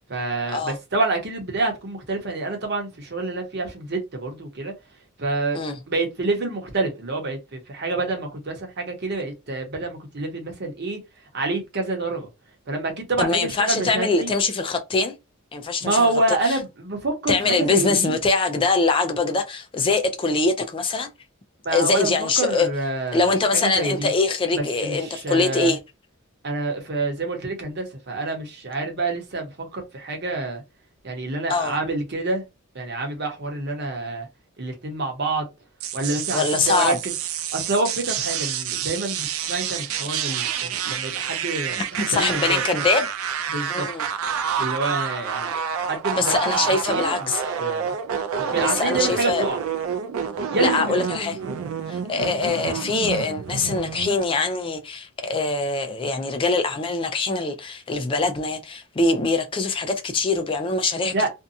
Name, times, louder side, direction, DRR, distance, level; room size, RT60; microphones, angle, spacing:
voice 1, 0.1-4.7 5.2-5.6 5.9-11.0 11.3-12.3 12.7-14.3 15.8-18.2 21.6-24.1 24.5-25.7 26.4-30.6 31.0-32.4 32.7-34.3 34.6-35.5 35.9-37.1 37.5-42.6 43.5-43.8 44.6-46.3 46.6-47.9 48.4-49.6 50.5-51.0 61.1-61.3, right 2 dB, 55° right, 0.9 m, -27 dB
voice 2, 13.2-15.2 15.5-16.6 17.3-21.1 21.7-22.7 23.1-25.8 31.5-31.8 36.3-37.0 42.0-43.1 43.7-44.1 46.2-47.4 48.6-49.5 50.6-51.4 51.9-61.3, left 3 dB, 25° left, 0.4 m, -23 dB
sound 1, 35.8-54.2, right 7 dB, 80° right, 0.4 m, -28 dB
2.6 x 2.2 x 2.6 m
head